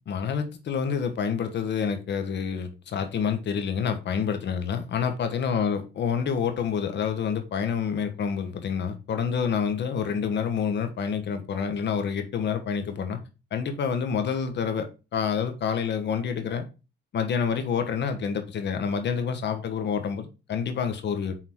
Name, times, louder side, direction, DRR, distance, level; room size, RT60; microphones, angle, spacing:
voice 1, 0.1-13.2 13.5-16.6 17.1-21.3, left 6 dB, 60° left, 1.3 m, -28 dB
5.9 x 3.9 x 4.6 m
cardioid pair, 90°, 20 cm